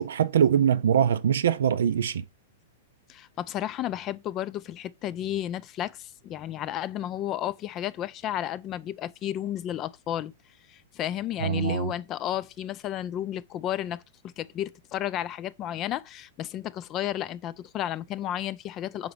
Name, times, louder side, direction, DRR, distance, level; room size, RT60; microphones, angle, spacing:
voice 1, 0.0-2.2 11.4-11.9, right 8 dB, 70° right, 0.4 m, -23 dB
voice 2, 3.1-10.3 10.7-19.1, left 12 dB, 35° left, 0.4 m, -32 dB
5.7 x 3.9 x 4.9 m
figure-of-eight pair, 105°, 0 cm